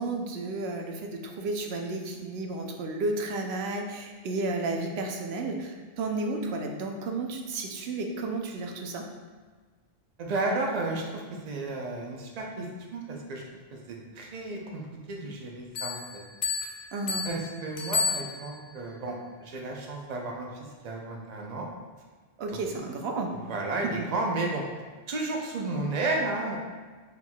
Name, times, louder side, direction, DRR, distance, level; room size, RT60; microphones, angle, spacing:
voice 1, 0.0-9.1 16.9-17.3 22.4-23.3 24.0-24.1, right 2 dB, 85° right, 3 dB, 0.8 m, -32 dB
voice 2, 10.2-13.4 13.9-14.8 15.1-16.2 17.2-21.7 22.5-22.6 23.3-24.6 25.1-26.6, right 2 dB, 50° right, 0 dB, 0.6 m, -33 dB
Bell, 15.7-18.8, left 5 dB, 80° left, 0.9 m, -32 dB
4.5 x 3.8 x 2.2 m, 1.5 s
omnidirectional pair, 1.0 m